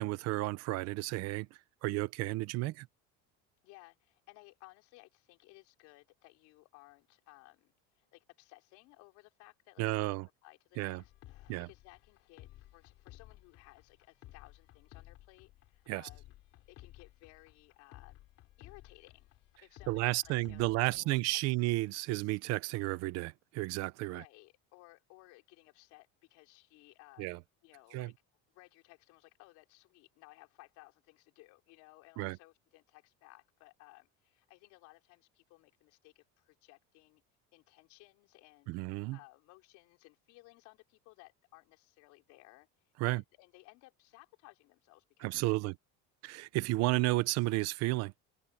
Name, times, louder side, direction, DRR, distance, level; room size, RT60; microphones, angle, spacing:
voice 1, 0.0-1.5 1.8-2.9 9.8-10.3 10.8-11.0 11.5-11.7 15.9-16.0 19.9-24.2 27.2-27.4 27.9-28.1 32.2-32.4 38.7-39.2 43.0-43.2 45.2-45.7 46.2-48.1, right 19 dB, 55° right, 0.9 m, -32 dB
voice 2, 3.6-16.3 16.7-18.2 18.6-19.3 19.6-21.4 24.0-28.1 28.5-37.2 37.5-42.7 43.1-45.6, left 21 dB, 65° left, 4.2 m, -59 dB
sound 1, 10.9-21.0, left 15 dB, 50° left, 3.1 m, -56 dB
cardioid pair, 175°, 31 cm